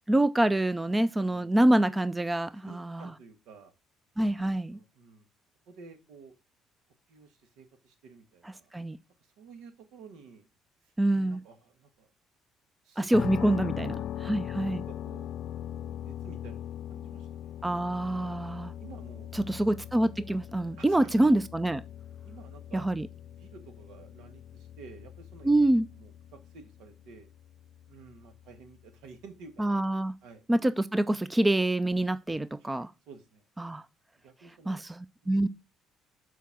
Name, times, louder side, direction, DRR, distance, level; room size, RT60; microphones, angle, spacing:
voice 1, 0.1-3.1 4.2-4.8 8.7-9.0 11.0-11.4 13.0-13.9 14.3-14.8 17.6-18.7 19.3-21.8 22.7-23.1 25.4-25.8 29.6-30.1 30.5-32.9 33.6-33.8 34.7-35.5, right 1 dB, 10° right, 0.4 m, -26 dB
voice 2, 0.8-1.5 2.5-3.7 4.2-5.3 5.7-6.3 7.1-8.7 9.2-10.5 10.8-12.1 12.8-13.2 13.5-15.3 16.0-16.6 16.9-17.9 18.2-18.4 18.8-19.3 20.8-21.1 22.2-22.9 23.2-25.5 26.0-27.3 27.9-29.8 30.2-30.4 32.6-33.8 34.2-34.8 35.3-35.4, right 5 dB, 80° right, 1.7 m, -52 dB
sound 1, 13.1-29.0, left 11 dB, 65° left, 0.4 m, -40 dB
6.7 x 4.6 x 6.2 m
cardioid pair, 100°, 0 cm